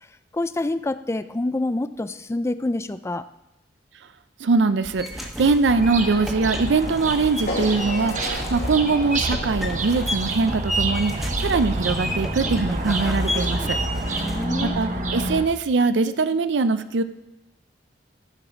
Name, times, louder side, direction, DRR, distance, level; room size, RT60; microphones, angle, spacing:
voice 1, 0.3-3.3 14.1-14.7, left 2 dB, 15° left, 13 dB, 0.3 m, -27 dB
voice 2, 4.4-13.8 14.1-14.3 14.6-17.0, right 4 dB, 80° right, 12 dB, 0.5 m, -22 dB
sound 1, 4.8-14.5, equal, ahead, 1.1 m, -32 dB
sound 2, 5.7-15.4, right 2 dB, 45° right, 1.0 m, -28 dB
sound 3, 7.5-13.6, left 1 dB, 80° left, 3.0 m, -36 dB
14.0 x 5.0 x 6.0 m, 0.92 s
head